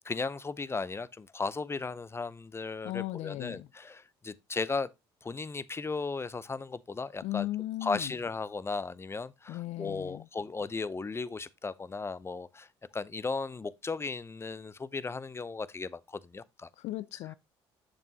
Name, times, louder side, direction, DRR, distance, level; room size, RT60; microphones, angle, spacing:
voice 1, 0.0-4.9 5.2-7.5 7.8-12.7 12.9-16.7, left 4 dB, 20° left, 0.6 m, -36 dB
voice 2, 2.8-3.7 7.2-8.1 9.5-10.3 16.8-17.3, left 16 dB, 65° left, 0.4 m, -36 dB
7.9 x 7.1 x 2.8 m
hypercardioid pair, 60°, 12 cm